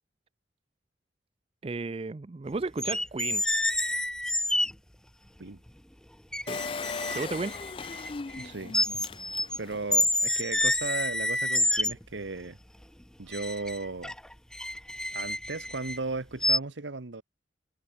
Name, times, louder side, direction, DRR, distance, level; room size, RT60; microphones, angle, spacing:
voice 1, 1.6-3.4 6.5-6.6 7.1-7.6, right 3 dB, 30° right, 0.4 m, -33 dB
sound 1, 2.8-4.7 5.7-5.8 6.3-8.5 8.7-9.6 9.9-12.2 13.3-16.0 16.4-16.6, left 1 dB, 5° left, 0.9 m, -28 dB
Engine, 6.5-9.9 10.4-10.5 10.7-10.8, left 5 dB, 30° left, 0.4 m, -38 dB
voice 2, 8.4-8.8 9.6-12.6 13.2-14.1 15.1-17.2, right 3 dB, 85° right, 1.2 m, -36 dB
head